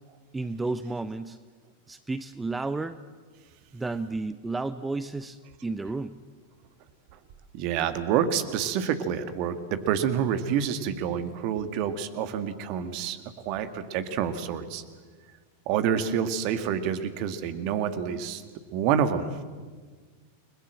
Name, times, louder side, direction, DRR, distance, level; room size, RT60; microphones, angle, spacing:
voice 1, 0.3-1.4 1.9-3.0 3.7-6.2, right 3 dB, 10° right, 13 dB, 0.7 m, -32 dB
voice 2, 7.5-13.2 13.5-14.8 15.7-18.4 18.7-19.3, right 8 dB, 45° right, 10 dB, 1.9 m, -28 dB
29.5 x 21.0 x 7.7 m, 1.5 s
figure-of-eight pair, 90°, 0 cm